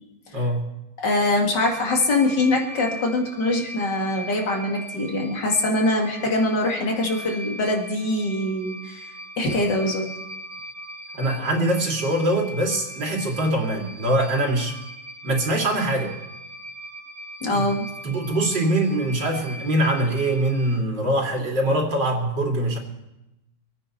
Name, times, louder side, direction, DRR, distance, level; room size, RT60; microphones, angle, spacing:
voice 1, 0.3-0.7 11.1-14.7 15.2-16.1 17.5-17.6 18.0-22.8, right 1 dB, 85° right, -1 dB, 3.3 m, -23 dB
voice 2, 1.0-10.0 17.4-17.9, left 2 dB, 75° left, 1 dB, 2.7 m, -23 dB
sound 1, 1.6-20.8, equal, 65° right, 2.0 m, -40 dB
26.0 x 9.3 x 4.3 m, 0.93 s
omnidirectional pair, 1.9 m